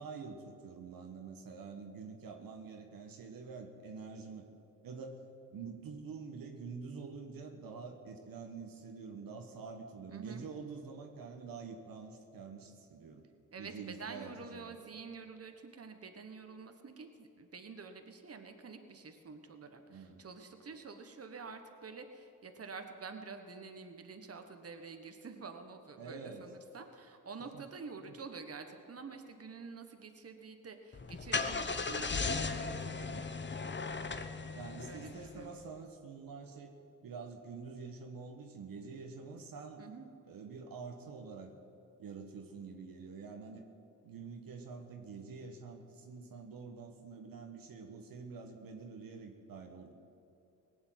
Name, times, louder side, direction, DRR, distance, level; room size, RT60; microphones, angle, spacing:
voice 1, 0.0-4.5 4.8-5.2 5.5-13.2 13.6-14.7 19.9-20.2 26.0-26.5 27.5-27.6 33.1-33.3 34.5-36.7 37.0-39.8 40.3-41.5 42.0-43.6 44.0-49.9, right 5 dB, 80° right, 4 dB, 1.4 m, -47 dB
voice 2, 10.1-10.4 13.5-33.3 34.9-35.5 39.8-40.1, right 4 dB, 45° right, 6 dB, 1.4 m, -48 dB
Car / Engine starting, 30.9-35.6, left 4 dB, 30° left, 1.0 m, -37 dB
18.0 x 7.1 x 9.2 m, 2.6 s
cardioid pair, 60°, 34 cm